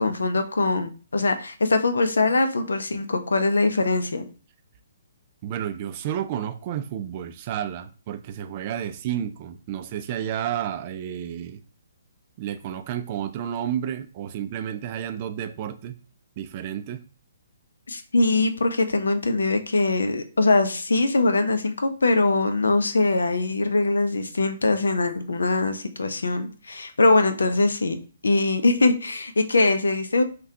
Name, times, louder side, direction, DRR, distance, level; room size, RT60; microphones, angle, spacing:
voice 1, 0.0-4.2 17.9-28.0 28.2-30.2, left 2 dB, 80° left, 0.5 m, -22 dB
voice 2, 5.4-11.6 12.4-15.9 16.4-17.0, right 10 dB, 40° right, 0.3 m, -31 dB
3.4 x 2.2 x 2.6 m
hypercardioid pair, 135°, 0 cm